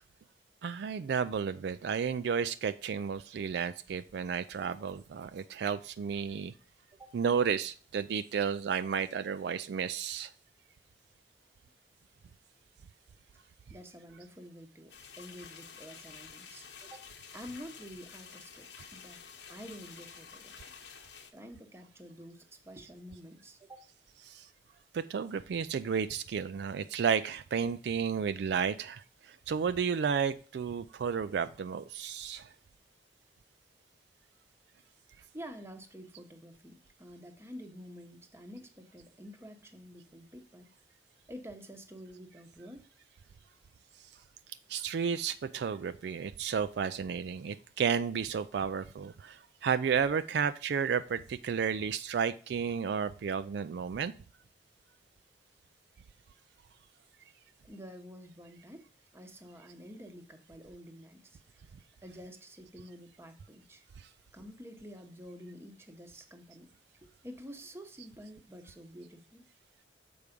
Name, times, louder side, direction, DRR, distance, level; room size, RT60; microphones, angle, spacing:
voice 1, 0.6-6.5 7.1-10.3 24.2-24.5 24.9-32.5 44.7-54.1 68.0-68.1, right 6 dB, 65° right, 12 dB, 0.3 m, -32 dB
voice 2, 13.7-17.1 17.3-19.2 19.5-20.6 21.3-23.8 35.2-40.7 41.3-42.9 57.6-58.9 59.1-61.7 62.0-63.8 64.3-66.7 67.0-69.5, equal, 15° right, 6 dB, 0.9 m, -49 dB
sound 1, 14.9-21.3, left 6 dB, 80° left, 1.0 m, -50 dB
6.9 x 4.8 x 5.1 m, 0.41 s
head